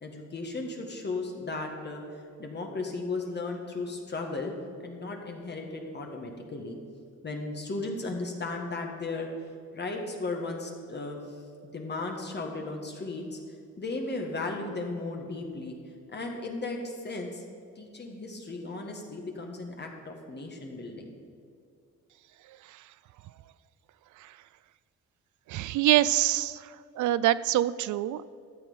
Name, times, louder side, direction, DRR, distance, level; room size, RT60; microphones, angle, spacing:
voice 1, 0.0-2.0 2.4-4.5 4.8-6.8 7.2-9.3 9.7-11.2 11.7-13.4 13.8-15.7 16.1-17.4 17.8-21.1, left 3 dB, 35° left, 2 dB, 1.6 m, -35 dB
voice 2, 25.5-26.6 27.0-28.3, right 14 dB, 75° right, 17 dB, 0.5 m, -25 dB
12.5 x 7.5 x 5.6 m, 2.4 s
cardioid pair, 90°, 30 cm